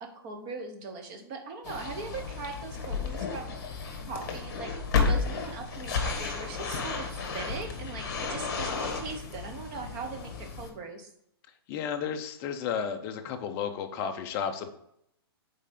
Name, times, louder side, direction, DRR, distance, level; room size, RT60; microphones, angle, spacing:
voice 1, 0.0-3.8 4.1-4.7 5.1-7.1 7.3-11.1, right 4 dB, 25° right, 4 dB, 0.9 m, -40 dB
sound 1, 1.6-10.7, left 5 dB, 45° left, 1.4 m, -32 dB
voice 2, 11.7-14.7, left 7 dB, 20° left, 5 dB, 0.5 m, -33 dB
5.4 x 4.3 x 5.1 m, 0.74 s
hypercardioid pair, 170°, 13 cm